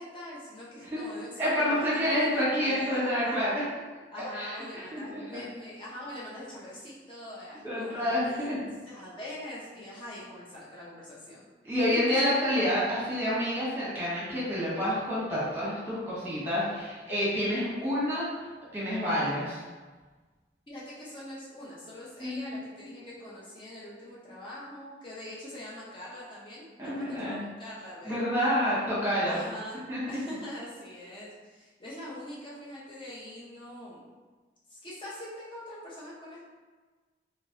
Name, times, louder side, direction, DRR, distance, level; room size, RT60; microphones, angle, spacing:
voice 1, 0.0-3.5 4.1-8.5 8.9-11.4 11.9-12.0 20.7-28.2 29.2-29.8 30.1-34.2 34.7-36.4, left 1 dB, 30° left, -7 dB, 0.8 m, -43 dB
voice 2, 1.4-3.6 4.2-5.4 7.6-8.6 11.6-18.3 18.7-19.6 22.2-22.9 26.8-27.4 28.0-29.4 29.9-30.2, equal, 10° right, -9 dB, 1.2 m, -28 dB
3.2 x 2.8 x 2.8 m, 1.3 s
head